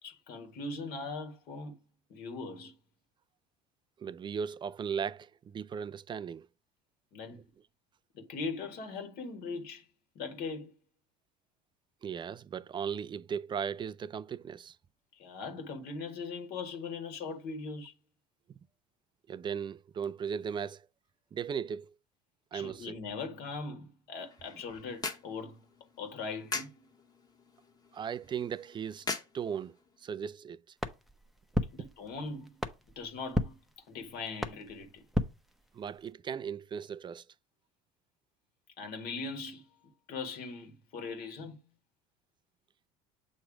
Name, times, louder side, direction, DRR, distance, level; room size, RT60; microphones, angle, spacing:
voice 1, 0.0-1.8 2.1-2.7 7.1-7.4 8.1-9.9 10.1-10.7 15.1-17.9 22.5-25.6 26.0-26.9 31.7-32.6 32.9-33.6 33.9-35.0 38.8-39.7 40.1-41.6, left 4 dB, 60° left, 1.7 m, -40 dB
voice 2, 4.0-6.5 12.0-14.8 19.3-20.9 21.3-22.0 22.5-23.0 27.9-29.1 29.3-30.7 35.7-37.2, right 7 dB, 25° right, 0.4 m, -37 dB
sound 1, 24.1-30.1, left 4 dB, 20° left, 1.3 m, -43 dB
sound 2, 30.8-36.1, left 1 dB, ahead, 0.7 m, -37 dB
7.1 x 3.1 x 4.9 m
supercardioid pair, 90°, 18 cm